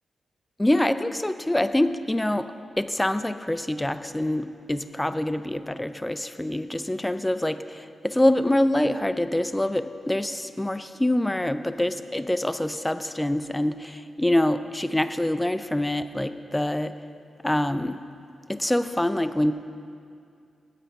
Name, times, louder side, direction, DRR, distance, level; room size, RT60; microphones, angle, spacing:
voice 1, 0.6-2.5 2.8-16.9 17.4-18.0 18.5-19.5, left 1 dB, 10° left, 11 dB, 0.4 m, -25 dB
9.1 x 8.7 x 5.3 m, 2.4 s
wide cardioid pair, 100°, 0 cm